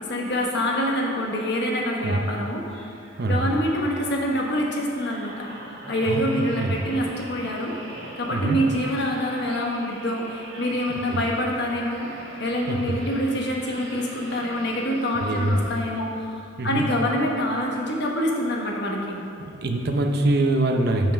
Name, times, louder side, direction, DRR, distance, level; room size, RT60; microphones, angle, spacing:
voice 1, 0.1-2.8 3.3-5.5 5.9-7.8 8.2-12.1 12.4-19.2, equal, 60° left, -1 dB, 1.2 m, -26 dB
sound 1, 2.6-16.2 16.8-16.9, right 1 dB, 85° right, 2.0 m, -43 dB
voice 2, 3.2-3.5 6.1-6.7 8.3-8.6 11.1-11.2 12.7-12.9 15.1-15.5 16.6-16.8 19.6-21.1, right 2 dB, 55° right, 4 dB, 0.7 m, -24 dB
7.3 x 5.7 x 5.1 m, 2.5 s
head